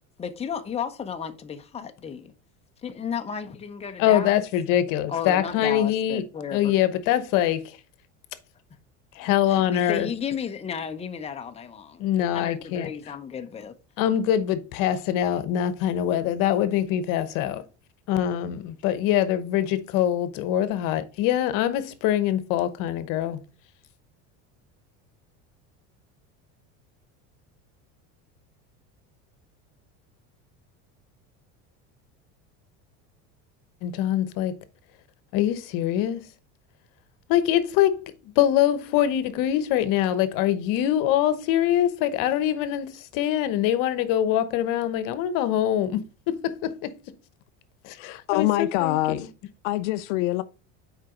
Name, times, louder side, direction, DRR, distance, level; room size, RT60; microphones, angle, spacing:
voice 1, 0.2-2.3 2.8-4.4 5.1-6.7 9.2-12.1 12.3-13.7, left 7 dB, 15° left, 0.8 m, -33 dB
voice 2, 4.0-6.2 6.5-7.8 9.1-10.1 12.0-12.9 14.0-17.6 18.1-23.4 33.8-34.6 35.3-36.2 37.3-46.9 47.8-49.2, left 11 dB, 65° left, 1.0 m, -24 dB
voice 3, 48.0-49.3 49.6-50.4, left 16 dB, 80° left, 0.5 m, -25 dB
7.3 x 4.9 x 3.8 m
supercardioid pair, 125°, 35 cm